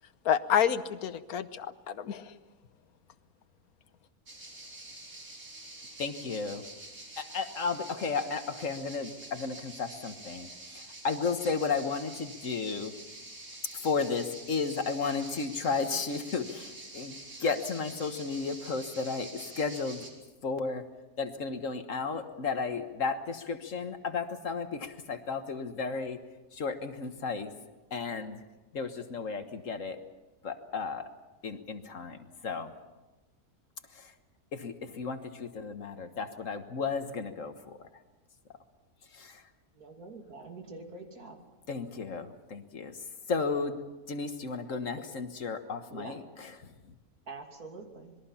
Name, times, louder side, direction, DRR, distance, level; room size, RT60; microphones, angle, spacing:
voice 1, 0.2-2.3, left 9 dB, 85° left, 12 dB, 1.4 m, -29 dB
sound 1, 4.3-20.1, right 2 dB, 70° right, 4.4 m, -47 dB
voice 2, 6.0-6.7 7.2-13.0 13.7-20.1 20.4-20.9 21.2-26.2 26.5-27.5 27.9-28.4 28.7-30.0 30.4-31.1 31.4-32.7 33.9-34.1 34.5-37.9 39.1-39.4 41.7-43.0 43.3-43.8 44.1-47.0, left 4 dB, 60° left, 8 dB, 1.8 m, -34 dB
voice 3, 39.7-41.4 45.9-46.2 47.3-48.2, right 3 dB, 85° right, 2 dB, 3.3 m, -45 dB
26.5 x 21.5 x 5.7 m, 1.1 s
omnidirectional pair, 1.5 m